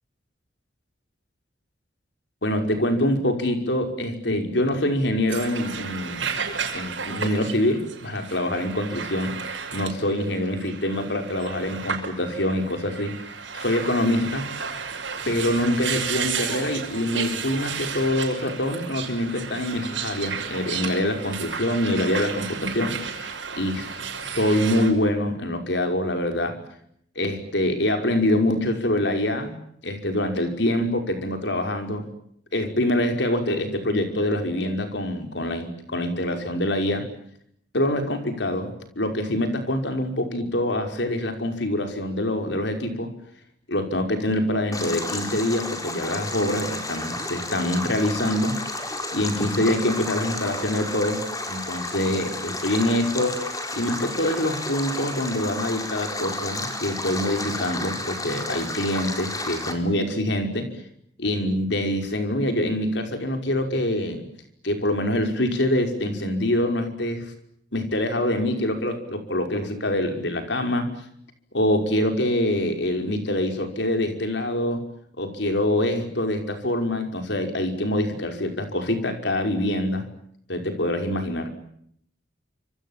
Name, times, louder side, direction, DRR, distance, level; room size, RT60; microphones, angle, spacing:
voice 1, 2.4-6.3 6.7-13.1 13.5-14.8 15.3-24.0 24.3-26.6 27.2-29.6 29.8-32.1 32.5-37.1 37.7-43.1 43.7-48.6 49.1-60.7 61.2-64.3 64.6-67.3 67.7-70.9 71.5-74.8 75.2-80.1 80.5-81.5, left 1 dB, 65° left, 6 dB, 5.6 m, -25 dB
sound 1, 5.3-24.9, right 6 dB, 90° right, 6.4 m, -33 dB
Stream, 44.7-59.7, left 2 dB, 20° left, 4.5 m, -32 dB
28.5 x 27.0 x 7.5 m, 0.70 s
head